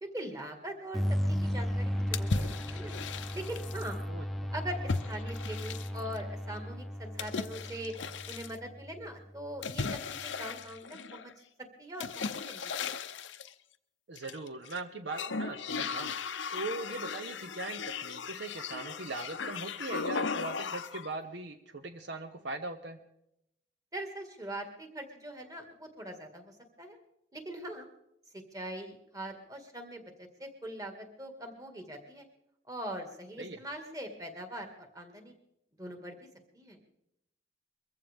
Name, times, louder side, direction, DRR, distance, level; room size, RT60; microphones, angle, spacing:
voice 1, 0.0-2.9 3.3-4.0 4.5-7.9 8.3-11.3 11.8-12.9 23.9-26.5 26.8-27.0 27.3-27.9 28.3-32.2 32.7-35.3 35.8-36.2 36.5-36.8, right 1 dB, 20° right, 4 dB, 2.0 m, -42 dB
sound 1, 0.9-9.6, equal, ahead, 0.8 m, -35 dB
sound 2, 2.1-3.9 4.9-6.2 7.2-8.6 9.6-11.3 12.0-13.5 14.2-14.8 15.1-21.1, left 5 dB, 70° left, 0.7 m, -37 dB
voice 2, 14.1-23.0 33.4-33.6, right 3 dB, 60° right, 8 dB, 0.9 m, -40 dB
22.5 x 15.0 x 3.6 m, 0.82 s
head